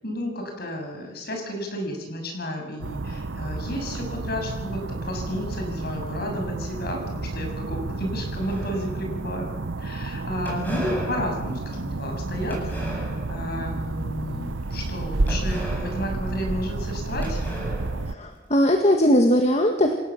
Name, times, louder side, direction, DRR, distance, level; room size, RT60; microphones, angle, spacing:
voice 1, 0.0-9.5 9.8-12.6 13.3-17.4, left 1 dB, 55° left, 3 dB, 7.0 m, -32 dB
sound 1, 2.8-18.2, right 2 dB, 85° right, 0.8 m, -31 dB
sound 2, 8.4-9.2 10.4-13.5 14.0-14.3 15.3-16.9 17.2-18.6, right 1 dB, 10° left, 7.7 m, -36 dB
voice 2, 18.1-20.0, equal, 35° left, 4 dB, 1.9 m, -19 dB
28.5 x 17.0 x 7.5 m, 1.1 s
head